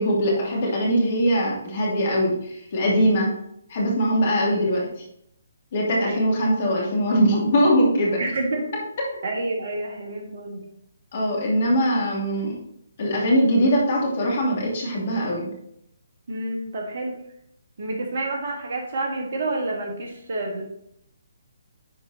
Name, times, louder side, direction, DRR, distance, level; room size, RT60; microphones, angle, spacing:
voice 1, 0.0-3.3 3.7-5.0 5.7-8.2 11.1-12.6 13.0-15.5, equal, 45° left, -3 dB, 2.8 m, -21 dB
voice 2, 8.2-8.8 9.2-10.7 16.3-17.2 17.8-20.6, right 2 dB, 50° right, 1 dB, 1.5 m, -29 dB
10.5 x 4.5 x 2.9 m, 0.73 s
figure-of-eight pair, 135°, 0 cm